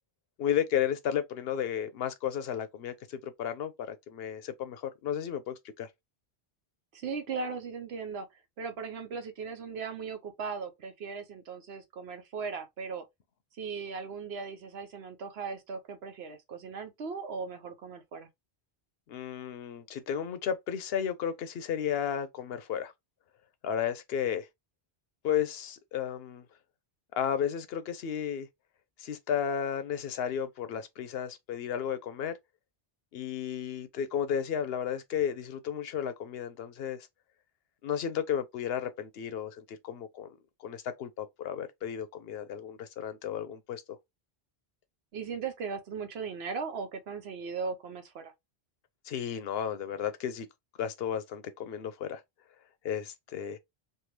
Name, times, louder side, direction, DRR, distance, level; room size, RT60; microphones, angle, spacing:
voice 1, 0.4-5.9 19.1-22.9 23.6-24.5 25.2-26.5 27.2-28.5 29.0-32.3 33.1-37.1 37.8-40.3 40.6-44.0 49.1-50.5 50.8-52.2 52.8-53.6, left 8 dB, 75° left, 0.8 m, -33 dB
voice 2, 6.9-8.3 8.6-13.0 13.5-18.3 45.1-48.3, right 5 dB, 85° right, 1.0 m, -38 dB
3.4 x 2.3 x 2.9 m
omnidirectional pair, 1.0 m